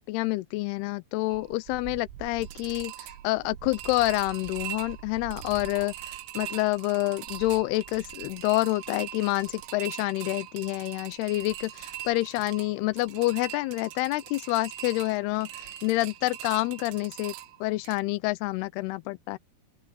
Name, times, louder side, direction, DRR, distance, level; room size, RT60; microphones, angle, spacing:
voice 1, 0.1-17.3 17.6-19.4, left 20 dB, 85° left, 2.3 m, -28 dB
sound 1, 1.3-18.0, right 13 dB, 90° right, 3.7 m, -42 dB
open air
omnidirectional pair, 5.4 m